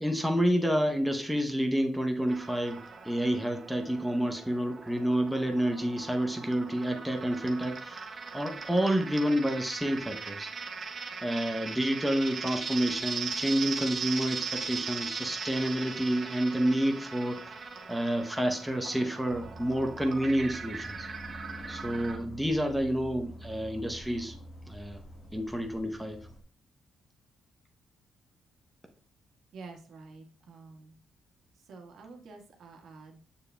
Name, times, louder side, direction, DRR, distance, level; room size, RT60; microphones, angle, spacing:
voice 1, 0.0-10.5 11.2-17.6 17.9-21.1 21.7-24.4 24.7-25.0 25.3-26.3, equal, 5° right, 3 dB, 0.7 m, -29 dB
sound 1, 2.3-22.2, right 5 dB, 45° right, 1.1 m, -39 dB
sound 2, 19.2-26.4, equal, 35° left, 1.5 m, -46 dB
voice 2, 29.5-30.9 31.6-33.2, right 4 dB, 70° right, 2 dB, 1.4 m, -48 dB
6.8 x 6.7 x 2.2 m, 0.42 s
cardioid pair, 90°, 0 cm